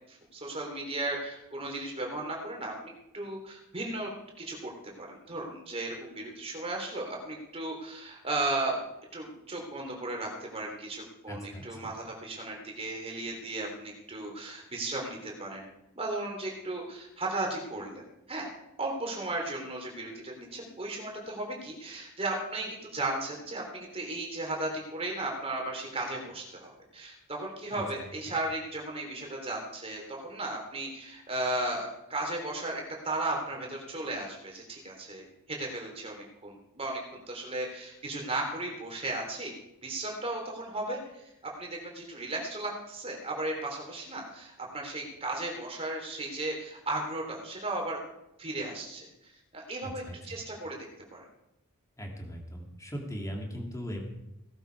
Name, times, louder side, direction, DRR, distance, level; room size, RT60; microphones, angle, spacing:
voice 1, 0.1-2.7 3.1-4.1 4.4-4.7 5.0-8.8 9.1-15.6 16.0-18.5 18.8-39.5 39.8-48.0 48.4-50.9 51.1-51.3, right 2 dB, 25° right, 0 dB, 3.5 m, -35 dB
voice 2, 11.3-11.7 27.7-27.8 49.8-50.2 52.0-54.0, equal, 15° left, 1 dB, 2.6 m, -38 dB
17.5 x 12.0 x 4.7 m, 0.88 s
head